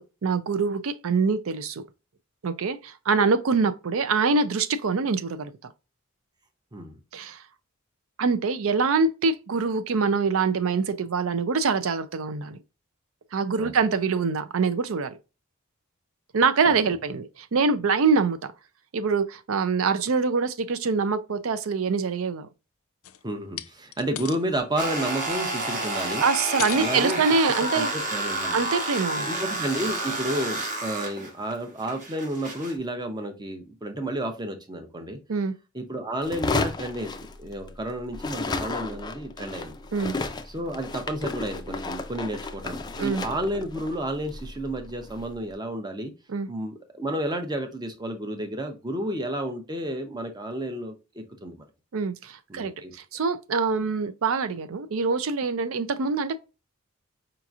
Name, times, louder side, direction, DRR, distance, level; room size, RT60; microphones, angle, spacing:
voice 1, 0.0-1.8 2.4-5.5 7.1-7.4 8.2-12.6 13.3-15.1 16.3-18.4 18.9-22.5 26.2-27.9 28.5-29.3 35.3-35.5 39.9-40.1 43.0-43.2 46.3-46.5 51.9-56.4, right 4 dB, 70° right, 0.5 m, -24 dB
sound 1, 23.0-23.2 23.6-24.4 24.8-25.7 26.2-27.0 27.6-27.8 28.3-28.4, left 12 dB, 85° left, 0.4 m, -38 dB
voice 2, 23.2-26.2 26.7-27.2 27.7-28.6 29.3-35.2 35.7-39.7 40.5-46.1 46.5-51.6 52.5-52.9, right 1 dB, 20° right, 0.7 m, -31 dB
sound 2, 24.8-32.7, right 1 dB, 40° right, 1.1 m, -30 dB
sound 3, 36.2-37.8 38.1-45.3, left 3 dB, 20° left, 0.3 m, -33 dB
5.0 x 2.9 x 2.4 m
head